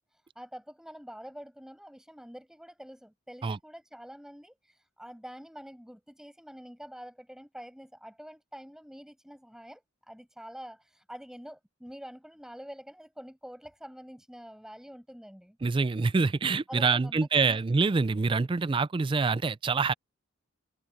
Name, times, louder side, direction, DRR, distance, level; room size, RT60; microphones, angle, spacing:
voice 1, 0.1-15.6 16.7-17.6, equal, ahead, 7.7 m, -46 dB
voice 2, 15.6-19.9, right 4 dB, 25° right, 0.3 m, -26 dB
head